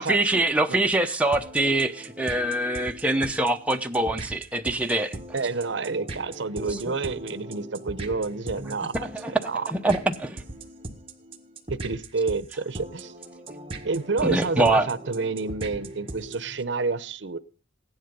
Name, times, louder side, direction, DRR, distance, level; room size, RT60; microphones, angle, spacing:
voice 1, 0.0-5.2 6.7-7.0 8.6-10.4 14.2-14.9, right 2 dB, 5° right, 0.8 m, -24 dB
sound 1, 1.3-16.6, right 2 dB, 30° right, 1.7 m, -39 dB
voice 2, 5.3-9.7 11.7-13.1 13.8-17.4, right 4 dB, 70° right, 0.7 m, -29 dB
16.0 x 11.0 x 5.3 m
head